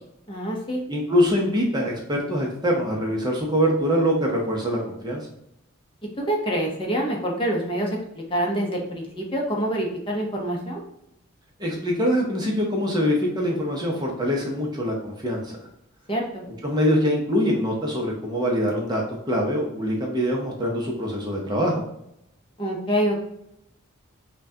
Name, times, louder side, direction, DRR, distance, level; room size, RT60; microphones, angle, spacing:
voice 1, 0.3-0.8 6.2-10.8 16.1-16.4 22.6-23.2, right 1 dB, 25° left, -1 dB, 0.7 m, -26 dB
voice 2, 0.9-5.2 11.6-15.6 16.6-21.8, equal, 20° right, -1 dB, 0.6 m, -24 dB
5.7 x 2.2 x 2.7 m, 0.77 s
head